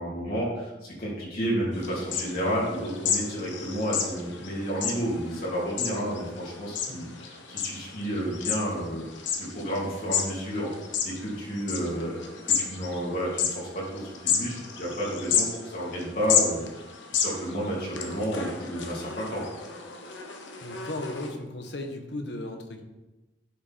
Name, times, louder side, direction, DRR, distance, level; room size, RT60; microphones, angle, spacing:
voice 1, 0.0-10.7 11.0-16.8 17.1-19.4, equal, 50° left, -6 dB, 3.1 m, -31 dB
sound 1, 1.7-21.3, left 7 dB, 90° left, 1.3 m, -32 dB
voice 2, 20.6-22.8, left 1 dB, 70° left, 5 dB, 1.3 m, -36 dB
11.0 x 6.6 x 4.4 m, 1.1 s
head